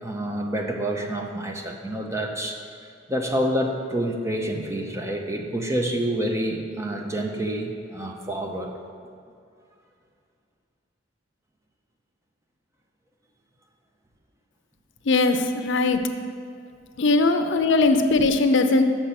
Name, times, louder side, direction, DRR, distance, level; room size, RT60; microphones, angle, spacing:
voice 1, 0.0-2.6 3.1-8.7, right 1 dB, 15° right, 2 dB, 0.6 m, -28 dB
voice 2, 15.1-16.0 17.0-18.8, left 3 dB, 65° left, 8 dB, 0.5 m, -20 dB
6.7 x 6.0 x 5.8 m, 2.3 s
head